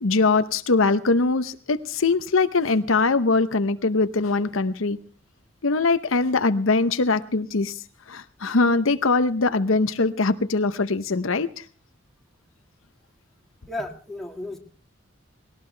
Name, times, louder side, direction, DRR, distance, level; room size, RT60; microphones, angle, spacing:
voice 1, 0.0-5.0 5.6-7.8 8.1-11.6, left 3 dB, 70° left, 11 dB, 0.8 m, -22 dB
voice 2, 13.7-14.6, left 1 dB, ahead, 2 dB, 1.9 m, -33 dB
20.0 x 18.0 x 3.3 m, 0.38 s
head